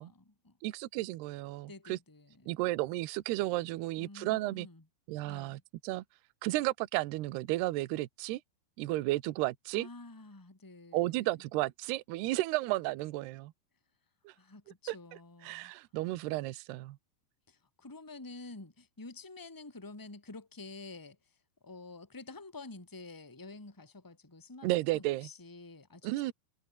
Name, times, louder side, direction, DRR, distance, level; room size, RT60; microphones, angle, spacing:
voice 1, 0.0-0.6 1.7-2.7 4.0-4.8 5.2-5.6 9.7-11.3 14.3-15.7 17.5-21.2 21.6-24.7 24.9-26.3, left 3 dB, 10° left, 1.2 m, -49 dB
voice 2, 0.6-2.0 2.5-4.7 5.1-6.0 6.4-8.4 8.8-9.9 10.9-13.5 14.3-14.4 14.9-15.0 15.4-17.0 24.6-25.3 26.0-26.3, right 18 dB, 75° right, 2.8 m, -33 dB
omnidirectional pair, 5.2 m